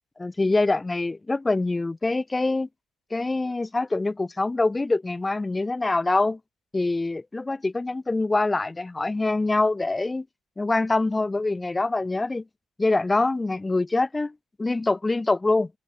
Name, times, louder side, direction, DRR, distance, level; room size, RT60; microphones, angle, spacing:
voice 1, 0.2-2.7 3.1-6.4 6.7-10.3 10.6-12.4 12.8-14.3 14.6-15.7, left 2 dB, 15° left, 3.9 m, -24 dB
open air
cardioid pair, 150°, 0 cm